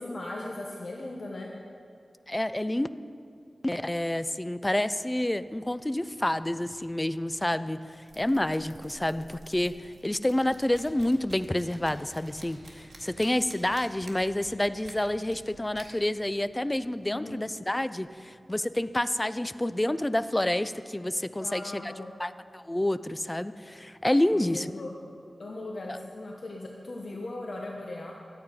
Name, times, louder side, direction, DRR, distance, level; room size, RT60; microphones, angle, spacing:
voice 1, 0.0-1.5 17.1-17.4 21.4-22.2 24.3-25.1 25.4-28.1, left 2 dB, 60° left, -1 dB, 1.0 m, -38 dB
voice 2, 2.3-2.9 3.6-7.8 8.2-21.9 22.2-24.7 25.9-26.0, left 1 dB, 15° left, 13 dB, 0.3 m, -28 dB
sound 1, 5.6-18.2, right 2 dB, 75° right, 1.9 m, -53 dB
13.5 x 8.6 x 5.3 m, 2.3 s
wide cardioid pair, 100°, 0 cm